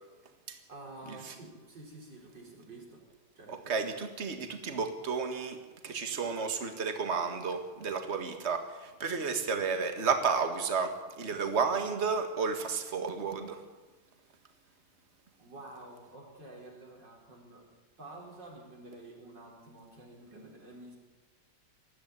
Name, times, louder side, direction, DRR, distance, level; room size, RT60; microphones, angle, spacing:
voice 1, 0.7-3.0 3.3-3.7 9.1-9.3 15.4-17.7 18.0-21.0, right 2 dB, 85° right, -1 dB, 5.5 m, -49 dB
voice 2, 3.5-13.6, right 5 dB, 40° right, 6 dB, 2.0 m, -32 dB
21.0 x 14.0 x 9.8 m, 1.2 s
omnidirectional pair, 1.9 m